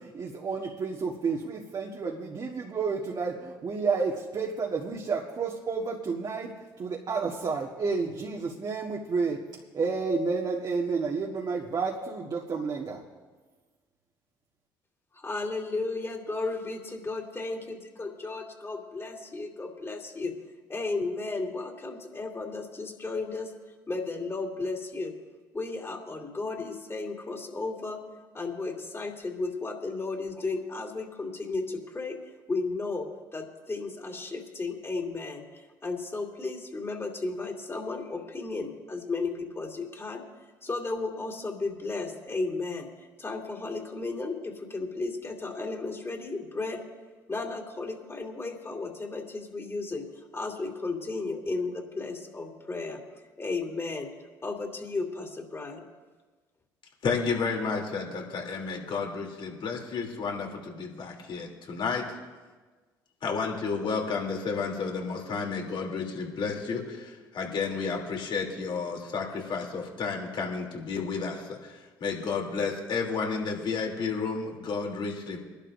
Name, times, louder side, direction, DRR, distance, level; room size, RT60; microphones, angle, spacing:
voice 1, 0.0-6.5 6.8-9.4 9.7-13.0, right 4 dB, 45° right, -2 dB, 1.7 m, -30 dB
voice 2, 15.1-20.3 20.7-23.5 23.9-25.1 25.5-28.0 28.3-32.2 32.5-40.2 40.6-46.8 47.3-50.0 50.3-53.0 53.4-54.1 54.4-55.8, left 3 dB, 25° left, 0 dB, 3.1 m, -34 dB
voice 3, 57.0-62.0 63.2-75.4, left 5 dB, 55° left, 1 dB, 3.3 m, -31 dB
24.0 x 12.0 x 2.7 m, 1.3 s
hypercardioid pair, 60°, 10 cm